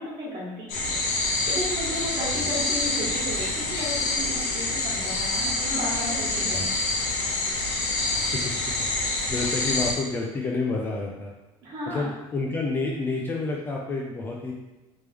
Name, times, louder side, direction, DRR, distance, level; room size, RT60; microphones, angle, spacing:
voice 1, 0.0-6.7 11.6-12.1, equal, 40° right, -5 dB, 1.4 m, -34 dB
sound 1, 0.7-9.9, left 2 dB, 65° left, 1.1 m, -27 dB
voice 2, 2.3-2.7 6.5-6.7 8.1-8.5 9.0-11.3 11.9-14.5, left 3 dB, 15° left, -1 dB, 0.3 m, -29 dB
3.4 x 3.0 x 3.3 m, 1.1 s
cardioid pair, 160°, 13 cm